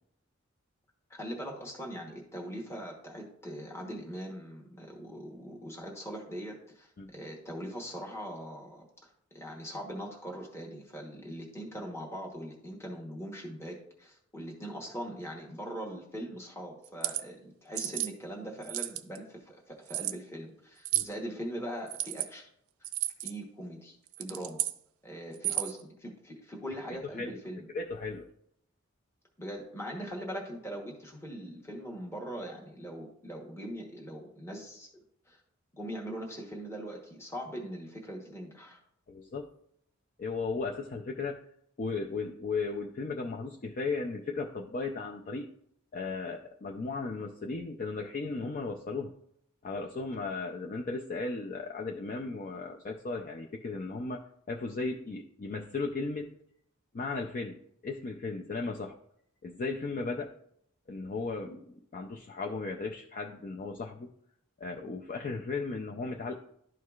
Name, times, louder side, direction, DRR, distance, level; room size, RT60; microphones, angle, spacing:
voice 1, 1.1-8.8 9.3-22.5 23.2-24.6 25.0-27.7 29.4-34.9 35.3-35.4 35.7-38.8, equal, 15° left, 0 dB, 1.0 m, -41 dB
sound 1, 16.8-17.2 17.8-18.1 18.6-19.2 19.9-20.2 20.8-21.1 21.9-22.3 22.8-23.3 24.1-24.8 25.3-25.8, right 15 dB, 80° right, 0.4 m, -32 dB
voice 2, 27.7-28.3 39.1-39.5 40.2-41.5 41.8-45.5 45.9-49.1 49.6-56.3 56.9-58.9 59.4-60.3 60.9-64.1 64.6-66.3, left 3 dB, 40° left, 1 dB, 0.5 m, -36 dB
12.0 x 4.6 x 2.4 m, 0.69 s
head